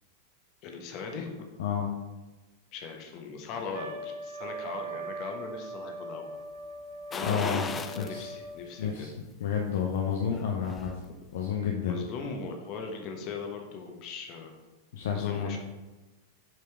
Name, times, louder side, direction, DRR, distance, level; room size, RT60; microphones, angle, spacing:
voice 1, 0.6-1.5 2.7-6.3 7.1-9.1 11.8-14.5 15.1-15.6, left 5 dB, 40° left, 3 dB, 1.1 m, -39 dB
voice 2, 1.6-1.9 7.2-7.7 8.0-8.3 8.8-9.1 9.4-11.0 11.3-12.0 14.9-15.6, left 7 dB, 60° left, 1 dB, 0.7 m, -30 dB
Trumpet, 3.7-8.7, right 1 dB, 55° right, 0.9 m, -40 dB
sound 1, 7.1-8.2 8.6-8.7 10.2-11.0 11.3-11.4, left 5 dB, 20° left, 0.4 m, -37 dB
7.4 x 4.9 x 3.5 m, 1.1 s
figure-of-eight pair, 90°, 0 cm